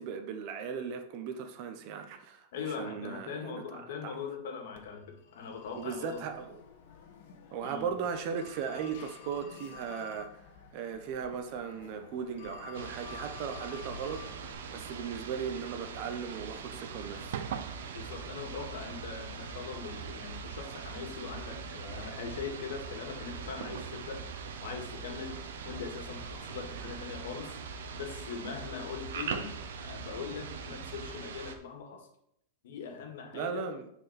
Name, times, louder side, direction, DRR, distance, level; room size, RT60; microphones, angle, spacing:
voice 1, 0.0-4.1 5.7-6.6 7.5-10.4 10.7-17.4 26.8-26.9 33.3-33.9, right 6 dB, 40° right, 1.0 m, -37 dB
voice 2, 2.5-6.2 7.6-7.9 17.9-32.1 32.6-33.7, left 6 dB, 75° left, 2.0 m, -41 dB
Telephone, 4.7-14.5, left 6 dB, 60° left, 1.4 m, -51 dB
sound 1, 11.7-29.4, right 9 dB, 70° right, 0.7 m, -49 dB
sound 2, 12.7-31.6, right 5 dB, 90° right, 1.2 m, -42 dB
9.7 x 4.7 x 4.3 m
supercardioid pair, 160°, 0 cm